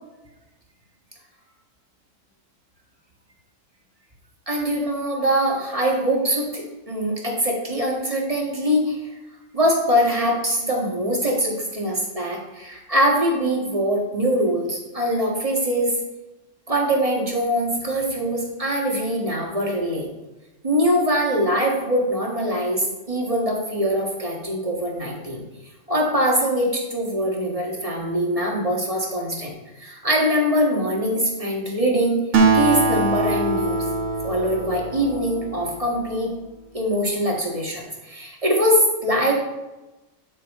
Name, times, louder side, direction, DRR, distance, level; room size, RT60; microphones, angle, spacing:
voice 1, 4.5-9.0 9.5-15.9 16.7-20.1 20.6-25.4 25.9-32.2 32.5-33.8 34.2-36.3 36.7-39.3, equal, 25° right, -1 dB, 1.8 m, -23 dB
Acoustic guitar, 32.3-36.1, right 3 dB, 70° right, 1.4 m, -22 dB
8.1 x 7.3 x 3.7 m, 1.0 s
omnidirectional pair, 1.3 m